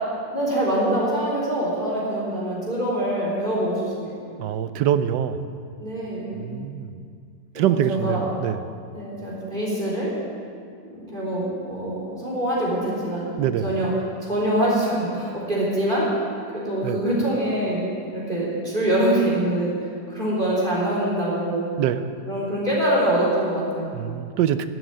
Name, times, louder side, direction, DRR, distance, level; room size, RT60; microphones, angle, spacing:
voice 1, 0.3-4.2 5.8-6.5 7.5-8.3 8.9-10.1 10.8-13.9 14.2-16.1 16.5-17.8 18.1-21.7 22.3-23.9, right 1 dB, 25° right, -6 dB, 4.0 m, -24 dB
voice 2, 4.4-5.5 6.3-7.0 7.6-8.6 13.4-13.7 16.8-17.0 21.8-22.1 23.9-24.7, right 10 dB, 85° right, 12 dB, 1.3 m, -24 dB
12.0 x 7.9 x 8.9 m, 2.3 s
omnidirectional pair, 1.8 m